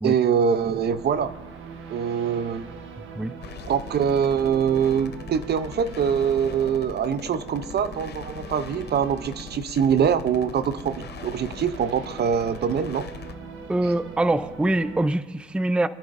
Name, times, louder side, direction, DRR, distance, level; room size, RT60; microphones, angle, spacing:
voice 1, 0.0-1.3 1.9-2.6 3.7-13.1, right 7 dB, 55° right, 13 dB, 0.6 m, -24 dB
sound 1, 0.5-15.1, right 5 dB, 85° right, 1.1 m, -41 dB
sound 2, 3.4-13.4, left 8 dB, 55° left, 0.7 m, -42 dB
voice 2, 13.7-15.9, right 1 dB, 5° right, 13 dB, 0.4 m, -24 dB
25.5 x 10.5 x 2.6 m, 1.3 s
cardioid pair, 90°, 20 cm